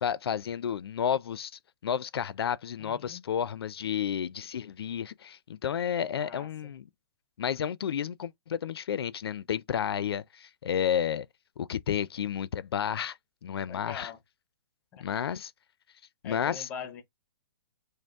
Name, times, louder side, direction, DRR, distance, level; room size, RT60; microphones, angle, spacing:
voice 1, 0.0-1.5 1.8-6.9 7.4-11.3 11.6-13.2 13.4-14.1 15.0-15.5 16.2-16.7, left 8 dB, 70° left, 0.4 m, -31 dB
voice 2, 2.8-3.2 6.1-6.7 13.7-14.2 14.9-15.0 16.2-17.0, left 6 dB, 10° left, 0.5 m, -43 dB
5.2 x 2.0 x 3.4 m
hypercardioid pair, 175°, 13 cm